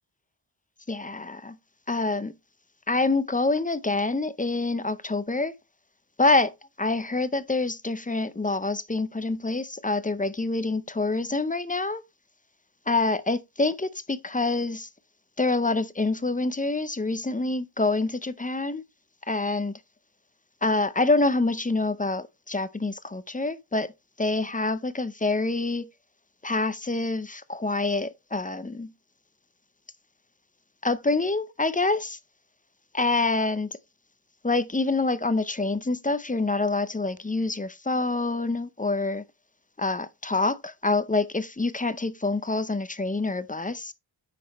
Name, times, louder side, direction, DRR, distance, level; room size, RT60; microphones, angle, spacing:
voice 1, 0.9-1.6 1.9-2.3 2.9-5.5 6.2-6.5 6.8-12.0 12.9-14.9 15.4-18.8 19.3-19.7 20.6-23.9 24.2-25.9 26.4-28.9 30.8-32.2 32.9-33.7 34.4-39.2 39.8-43.9, left 3 dB, 20° left, 0.5 m, -26 dB
9.4 x 5.9 x 3.0 m
wide cardioid pair, 120°, 48 cm